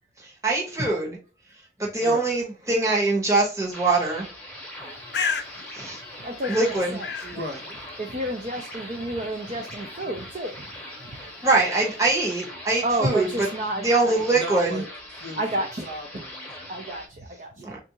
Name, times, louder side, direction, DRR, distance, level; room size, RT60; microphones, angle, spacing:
voice 1, 0.2-1.2 1.8-4.3 5.8-6.0 6.5-7.0 11.4-13.3 13.8-14.8 17.6-17.8, right 3 dB, 15° right, -4 dB, 1.0 m, -23 dB
voice 2, 2.0-2.3 7.2-7.7 14.3-14.9 15.2-16.9 17.6-17.7, equal, 70° right, 1 dB, 1.0 m, -37 dB
sound 1, 3.7-17.1, left 1 dB, 10° left, 0.8 m, -41 dB
Bird, 4.7-12.3, left 5 dB, 70° left, 0.5 m, -37 dB
voice 3, 6.2-7.3 8.0-10.8 11.0-11.2 12.8-14.2 15.4-15.8 16.7-17.7, right 1 dB, 40° right, 3 dB, 0.4 m, -31 dB
3.5 x 2.5 x 2.8 m, 0.36 s
head